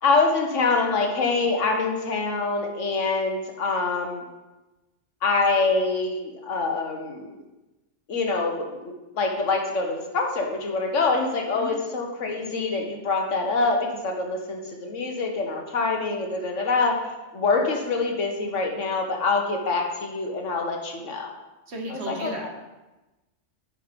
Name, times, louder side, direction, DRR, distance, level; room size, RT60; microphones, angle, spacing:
voice 1, 0.0-4.2 5.2-7.4 8.1-16.9 17.3-21.3 21.9-22.5, left 3 dB, 85° left, 2 dB, 1.6 m, -25 dB
voice 2, 21.7-22.5, right 1 dB, 60° right, 0 dB, 1.8 m, -34 dB
9.3 x 5.5 x 5.2 m, 1.1 s
omnidirectional pair, 1.2 m